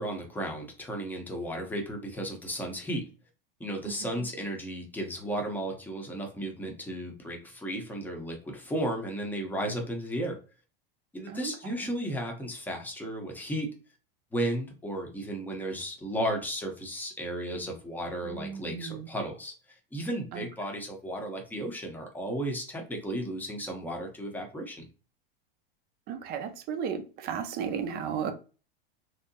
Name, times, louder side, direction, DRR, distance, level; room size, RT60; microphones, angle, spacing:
voice 1, 0.0-3.0 3.6-10.3 11.1-13.7 14.3-19.5 19.9-24.9, right 1 dB, 5° left, 0.8 m, -34 dB
voice 2, 18.2-19.1 20.3-20.4 26.1-28.3, right 7 dB, 35° right, 0.5 m, -34 dB
3.2 x 2.8 x 2.7 m
supercardioid pair, 130°, 30 cm